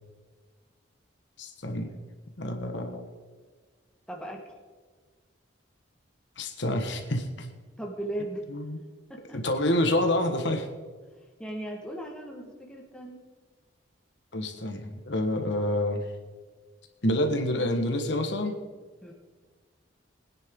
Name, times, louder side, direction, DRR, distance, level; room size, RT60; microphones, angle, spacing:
voice 1, 1.4-1.9 2.4-3.0 6.4-7.5 8.5-8.8 9.3-10.7 14.3-16.0 17.0-18.5, left 1 dB, 70° left, 5 dB, 1.4 m, -27 dB
voice 2, 4.1-4.4 7.8-8.4 9.1-9.4 11.4-13.2 19.0-19.1, right 1 dB, 5° left, 0 dB, 1.6 m, -37 dB
21.0 x 9.9 x 3.8 m, 1.4 s
head